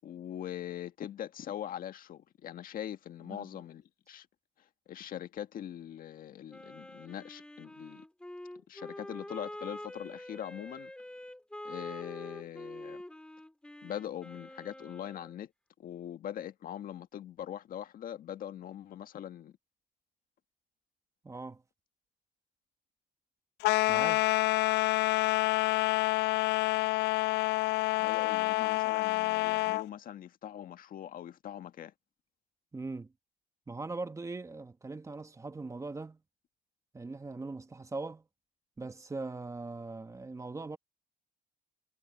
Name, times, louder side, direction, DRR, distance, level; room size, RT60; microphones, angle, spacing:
voice 1, 0.0-4.3 4.9-8.0 8.7-10.9 11.6-13.0 13.8-15.5 15.8-19.6 28.0-31.9, left 10 dB, 55° left, 1.6 m, -42 dB
Wind instrument woodwind instrument, 6.5-15.4, left 1 dB, 5° left, 2.0 m, -46 dB
voice 2, 21.2-21.6 23.9-24.3 32.7-33.1 33.7-36.2 36.9-38.2 38.8-40.8, right 3 dB, 20° right, 1.5 m, -40 dB
sound 1, 23.6-29.9, left 20 dB, 80° left, 0.5 m, -28 dB
cardioid pair, 110°, 17 cm